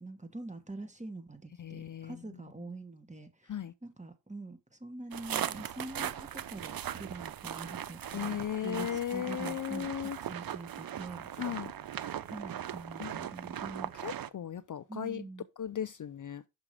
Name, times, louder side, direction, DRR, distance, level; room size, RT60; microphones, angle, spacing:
voice 1, 0.0-11.7 12.3-13.9 14.9-15.5, right 2 dB, 15° right, 1.6 m, -45 dB
voice 2, 1.6-2.2 3.5-3.7 8.1-10.2 11.4-11.7 13.0-13.1 14.0-15.2 15.6-16.5, left 10 dB, 45° left, 0.5 m, -36 dB
sound 1, 5.1-14.3, right 10 dB, 50° right, 0.6 m, -39 dB
6.0 x 5.7 x 4.8 m
cardioid pair, 55°, 44 cm